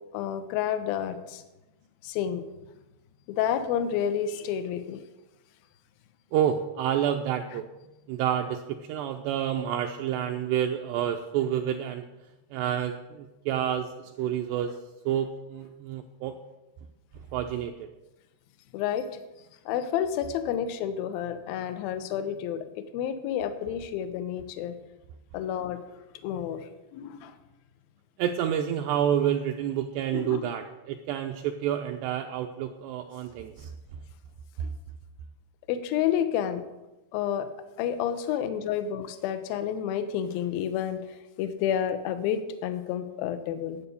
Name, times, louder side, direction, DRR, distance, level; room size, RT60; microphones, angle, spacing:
voice 1, 0.1-1.4 2.0-2.4 3.3-5.0 18.7-19.1 19.7-24.7 25.3-25.8 26.2-27.3 30.1-30.5 35.7-36.6 37.1-37.5 37.8-43.8, left 9 dB, 80° left, 10 dB, 2.1 m, -30 dB
voice 2, 6.3-7.6 8.1-12.0 12.5-14.7 15.1-16.4 17.3-17.9 28.2-33.7, right 10 dB, 80° right, 4 dB, 2.5 m, -29 dB
12.0 x 8.6 x 6.9 m, 1.0 s
omnidirectional pair, 5.5 m